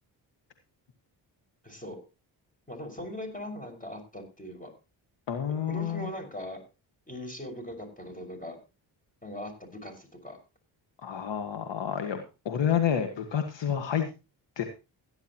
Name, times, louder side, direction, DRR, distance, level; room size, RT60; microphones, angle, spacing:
voice 1, 1.6-2.0 2.7-4.7 5.7-6.6 7.1-8.6 9.2-10.4, equal, 15° left, 5 dB, 6.1 m, -40 dB
voice 2, 5.3-6.1 11.0-14.1 14.6-14.7, left 8 dB, 65° left, 6 dB, 1.7 m, -29 dB
17.0 x 10.5 x 3.0 m, 0.30 s
supercardioid pair, 55°, 47 cm